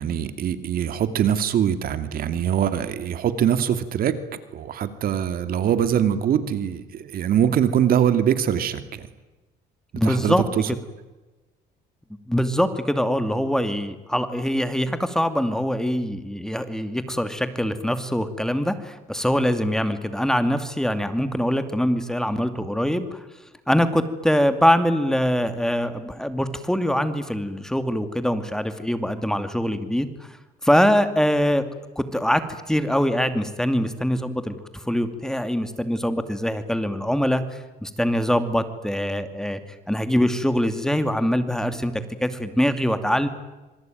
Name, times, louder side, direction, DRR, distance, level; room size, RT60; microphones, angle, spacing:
voice 1, 0.0-4.2 4.5-9.1 10.0-10.7, right 9 dB, 60° right, 11 dB, 2.5 m, -23 dB
voice 2, 9.9-10.4 12.3-23.2 23.7-30.4 30.6-31.6 32.0-39.6 39.9-43.3, equal, 5° left, 10 dB, 2.5 m, -23 dB
26.5 x 24.0 x 9.3 m, 1.1 s
cardioid pair, 110°, 17 cm